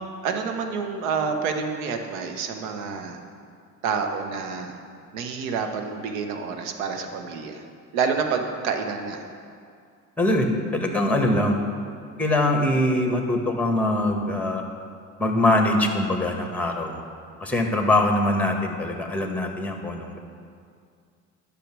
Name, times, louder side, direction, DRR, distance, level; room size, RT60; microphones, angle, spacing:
voice 1, 0.2-3.2 3.8-4.7 5.1-7.6 7.9-9.2, right 5 dB, 85° right, 5 dB, 1.2 m, -28 dB
voice 2, 10.2-11.6 12.2-14.6 15.2-17.0 17.4-20.2, left 1 dB, 5° left, 3 dB, 1.8 m, -23 dB
10.5 x 6.9 x 6.1 m, 2.3 s
supercardioid pair, 75°, 39 cm